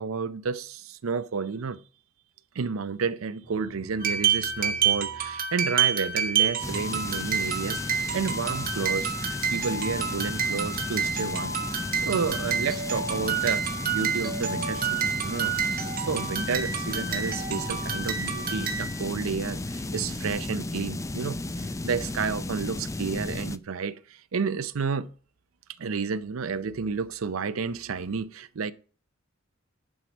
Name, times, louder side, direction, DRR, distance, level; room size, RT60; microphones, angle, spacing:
voice 1, 0.0-1.8 2.5-25.1 25.8-28.7, right 5 dB, 90° right, 0.5 m, -31 dB
sound 1, 3.4-5.5 6.1-13.9 14.4-18.5 19.0-22.3, right 1 dB, 10° right, 2.9 m, -50 dB
sound 2, 4.0-19.1, right 7 dB, 45° right, 1.6 m, -29 dB
sound 3, 6.6-23.6, left 2 dB, 15° left, 0.4 m, -34 dB
11.0 x 4.7 x 6.0 m
head